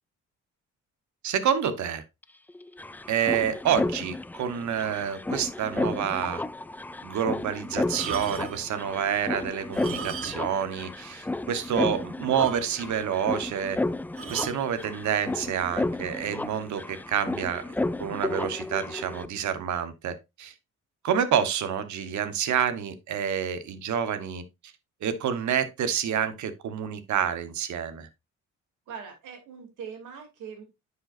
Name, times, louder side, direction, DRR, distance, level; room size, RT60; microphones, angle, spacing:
voice 1, 1.2-2.0 3.1-6.4 7.0-13.8 14.3-17.6 18.0-20.5 21.0-24.4 25.0-28.1, right 8 dB, 70° right, 1.2 m, -28 dB
sound 1, 2.2-2.3 2.5-19.3, left 2 dB, 5° left, 0.3 m, -33 dB
sound 2, 7.9-8.7 9.6-10.6 10.9-11.0 11.6-11.7 11.9-12.0 12.4-13.0 14.2-14.6 15.5-15.7, right 7 dB, 45° right, 1.2 m, -37 dB
voice 2, 28.9-30.6, right 6 dB, 85° right, 2.8 m, -41 dB
10.0 x 5.6 x 2.5 m
cardioid pair, 90°, 30 cm